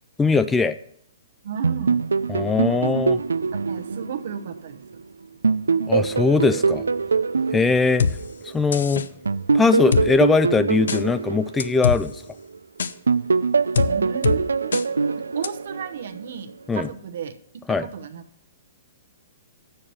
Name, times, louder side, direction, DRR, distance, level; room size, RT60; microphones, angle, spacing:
voice 1, 0.2-0.7 2.3-3.2 5.9-6.8 7.5-8.1 8.4-9.0 9.5-12.2 16.7-16.9 17.7-17.9, left 4 dB, 10° left, 12 dB, 0.4 m, -20 dB
voice 2, 1.4-2.0 3.7-4.8 13.9-17.3 17.8-18.2, right 7 dB, 65° right, 6 dB, 0.9 m, -34 dB
sound 1, 1.6-5.0 5.4-8.7 9.3-12.6 13.1-16.3, right 4 dB, 85° right, 0.3 m, -24 dB
sound 2, 8.0-8.1 8.7-9.1 9.9-10.1 10.9-11.0 11.6-12.0 12.8-12.9 13.7-13.9 14.2-14.4 14.7-14.8 15.4-15.5, left 6 dB, 75° left, 0.6 m, -22 dB
7.3 x 6.7 x 6.9 m, 0.66 s
hypercardioid pair, 125°, 0 cm